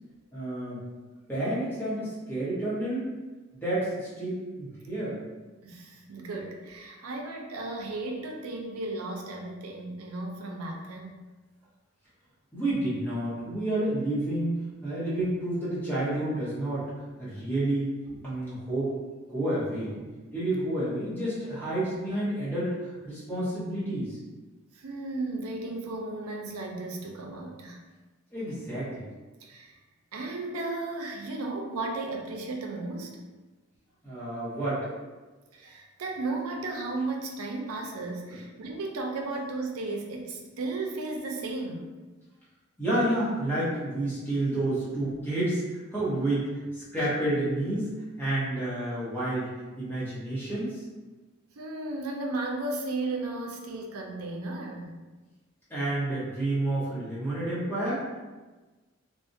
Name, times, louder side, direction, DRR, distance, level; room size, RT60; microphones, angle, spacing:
voice 1, 0.3-0.8 1.3-3.1 3.5-5.2 12.5-16.9 17.2-19.0 19.3-24.2 28.3-29.1 34.0-34.9 38.3-38.4 42.8-47.9 48.2-49.5 49.8-50.8 55.7-58.0, right 1 dB, 10° left, -11 dB, 0.8 m, -30 dB
voice 2, 5.6-11.2 24.7-27.8 29.4-29.8 30.1-33.2 35.5-41.9 51.6-54.9, right 2 dB, 90° right, 1 dB, 0.4 m, -34 dB
2.4 x 2.1 x 2.6 m, 1.2 s
head